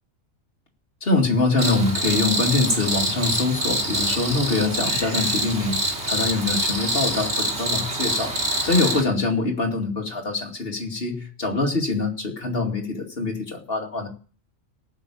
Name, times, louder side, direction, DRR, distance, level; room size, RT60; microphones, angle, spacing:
voice 1, 1.0-8.3 8.6-14.1, left 3 dB, 45° left, 2 dB, 2.7 m, -24 dB
Cricket, 1.6-9.0, right 1 dB, 55° right, 3.2 m, -25 dB
18.5 x 6.3 x 8.5 m, 0.42 s
omnidirectional pair, 1.4 m